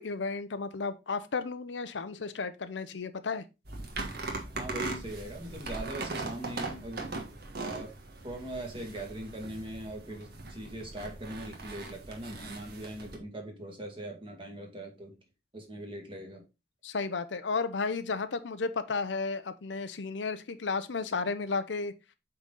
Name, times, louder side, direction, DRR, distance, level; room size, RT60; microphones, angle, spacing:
voice 1, 0.0-3.4 16.8-21.9, left 4 dB, 85° left, 0.7 m, -33 dB
sound 1, 3.6-13.2, right 3 dB, 60° right, 1.6 m, -40 dB
voice 2, 4.5-7.0 7.6-8.0 8.2-15.2 15.5-16.4, right 1 dB, 30° right, 2.0 m, -41 dB
8.1 x 4.0 x 3.8 m
head